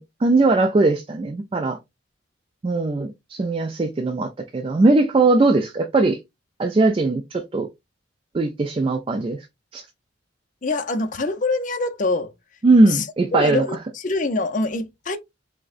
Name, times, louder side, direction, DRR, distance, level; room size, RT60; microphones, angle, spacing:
voice 1, 0.0-1.8 2.6-6.2 6.6-7.7 8.3-9.5 9.7-9.8 12.6-13.6, right 3 dB, 30° right, 0.3 m, -19 dB
voice 2, 10.6-12.3 12.9-13.0 13.3-15.2, left 3 dB, 40° left, 0.6 m, -24 dB
5.9 x 2.1 x 2.4 m
head